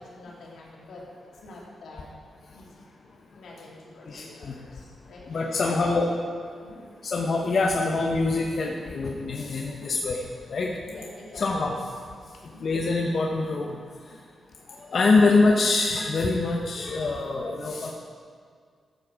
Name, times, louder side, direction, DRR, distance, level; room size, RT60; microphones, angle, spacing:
voice 1, 0.0-2.1 2.5-2.8 3.3-6.1 6.6-6.9 10.9-11.7 12.2-12.8 14.9-15.1, left 2 dB, 85° left, -4 dB, 2.9 m, -45 dB
voice 2, 4.1-4.5 5.3-6.0 7.0-10.2 10.5-10.7 11.4-11.7 12.6-13.8 14.7-17.9, left 3 dB, 50° left, 0 dB, 0.9 m, -24 dB
14.0 x 7.9 x 4.9 m, 2.1 s
wide cardioid pair, 125°, 0 cm